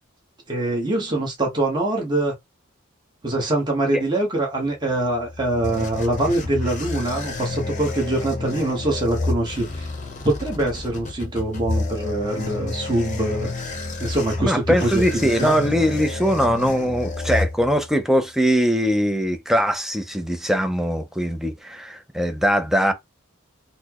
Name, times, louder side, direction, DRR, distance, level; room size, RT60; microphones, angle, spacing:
voice 1, 0.5-2.3 3.2-9.9 10.2-13.5 14.0-15.6, right 1 dB, 20° right, 1.1 m, -24 dB
sound 1, 5.2-18.0, left 2 dB, 35° left, 0.7 m, -29 dB
voice 2, 14.4-22.9, equal, ahead, 0.4 m, -21 dB
4.2 x 2.0 x 2.9 m
head